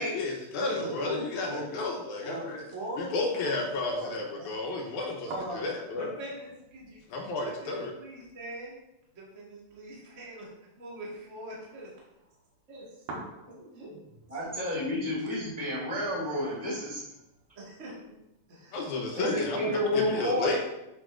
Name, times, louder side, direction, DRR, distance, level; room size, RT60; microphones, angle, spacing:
voice 1, 0.0-2.6 3.0-6.1 7.1-7.9 18.7-20.6, left 3 dB, 75° left, 0 dB, 2.1 m, -32 dB
voice 2, 0.6-1.8 2.2-4.5 5.3-5.6 5.9-7.0 7.4-8.7 9.1-11.9 12.7-13.3 13.8-13.9 17.5-17.9 18.6-19.0, right 1 dB, 30° right, -6 dB, 1.4 m, -41 dB
sound 1, 2.6-18.4, right 2 dB, 65° right, 2.2 m, -50 dB
voice 3, 14.3-17.0 19.1-20.5, left 1 dB, 15° left, -7 dB, 1.3 m, -30 dB
8.2 x 5.2 x 2.5 m, 0.90 s
omnidirectional pair, 3.7 m